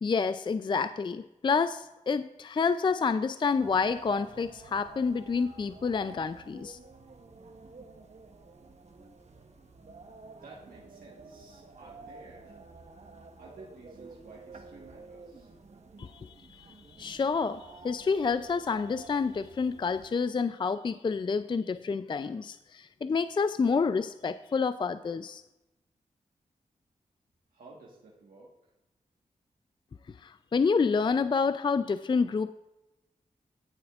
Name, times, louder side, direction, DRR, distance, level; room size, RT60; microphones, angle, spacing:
voice 1, 0.0-6.8 16.0-16.7 16.9-25.4 30.2-32.5, left 5 dB, 35° left, 12 dB, 0.3 m, -28 dB
sound 1, 3.6-20.1, right 3 dB, 50° right, 1.1 m, -51 dB
voice 2, 10.4-12.8 13.4-15.5 27.5-28.5, right 3 dB, 85° right, -4 dB, 1.4 m, -52 dB
16.5 x 7.1 x 2.4 m, 0.96 s
cardioid pair, 50°, 14 cm